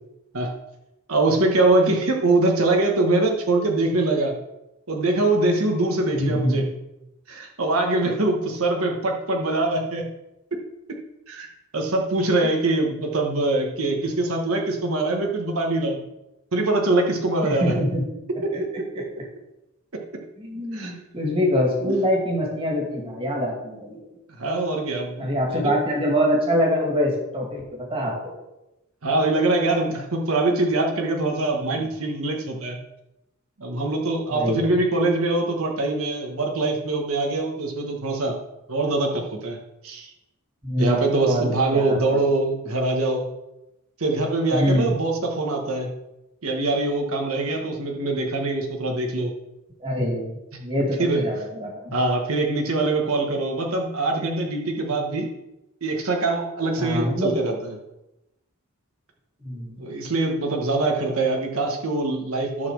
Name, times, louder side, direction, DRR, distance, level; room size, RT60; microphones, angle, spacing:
voice 1, 1.1-4.3 4.9-6.7 7.3-10.1 11.3-11.5 11.7-16.0 16.5-17.7 18.4-18.9 19.9-20.2 20.7-20.9 21.8-21.9 24.4-25.8 29.0-32.8 33.6-38.4 38.7-39.6 39.8-40.1 40.8-43.3 44.0-45.9 46.4-49.3 51.0-51.3 51.9-55.3 55.8-57.7 59.8-62.7, right 2 dB, 85° right, 1 dB, 1.4 m, -23 dB
voice 2, 6.1-6.7 12.4-12.5 17.4-18.0 18.5-18.6 20.4-24.0 25.2-28.3 34.3-34.7 40.6-42.2 44.5-44.9 49.8-50.3 50.6-51.9 56.8-57.3 59.4-59.8, equal, 25° right, -3 dB, 2.5 m, -24 dB
11.0 x 4.2 x 6.4 m, 0.94 s
head